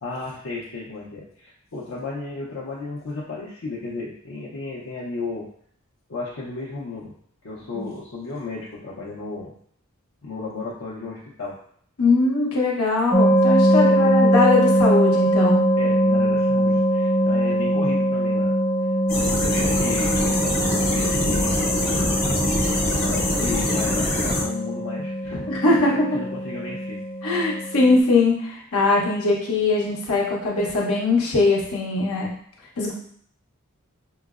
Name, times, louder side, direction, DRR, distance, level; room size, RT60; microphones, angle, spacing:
voice 1, 0.0-5.5 6.1-7.2 7.4-9.6 10.2-11.6 13.7-14.3 15.8-18.5 19.2-21.7 23.0-27.0, left 3 dB, 70° left, -6 dB, 0.7 m, -34 dB
voice 2, 12.0-15.6 25.5-26.0 27.2-32.3 32.8-32.9, left 3 dB, 90° left, -3 dB, 1.0 m, -21 dB
sound 1, 13.1-28.0, equal, 10° left, 0.5 m, -22 dB
sound 2, 19.1-24.4, left 1 dB, 45° left, 1.0 m, -23 dB
5.5 x 2.0 x 2.4 m, 0.62 s
head